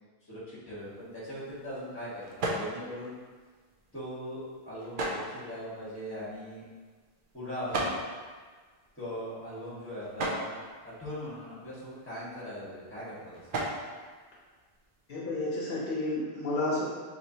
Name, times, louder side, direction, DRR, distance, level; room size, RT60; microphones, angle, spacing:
voice 1, 0.2-3.1 3.9-6.7 7.3-7.9 8.9-10.5 10.8-13.5, equal, 10° left, -9 dB, 1.3 m, -40 dB
sound 1, 0.8-15.1, right 1 dB, 60° right, 0.8 m, -40 dB
voice 2, 15.1-16.8, left 2 dB, 70° left, -5 dB, 0.9 m, -31 dB
4.3 x 3.1 x 2.7 m, 1.5 s
omnidirectional pair, 1.0 m